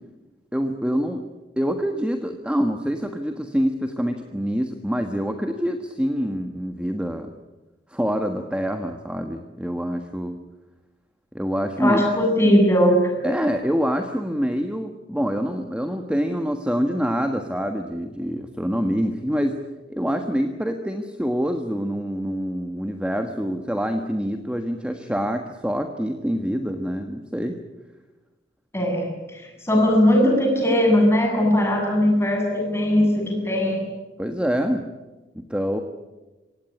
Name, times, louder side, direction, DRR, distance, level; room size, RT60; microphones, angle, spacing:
voice 1, 0.5-1.2 1.6-7.3 7.9-10.4 11.3-12.0 13.2-19.6 19.9-27.6 34.2-34.8 35.3-35.8, equal, 5° right, 5 dB, 1.4 m, -26 dB
voice 2, 11.8-13.1 28.7-33.8, equal, 15° left, 1 dB, 7.9 m, -19 dB
26.0 x 17.5 x 9.9 m, 1.2 s
head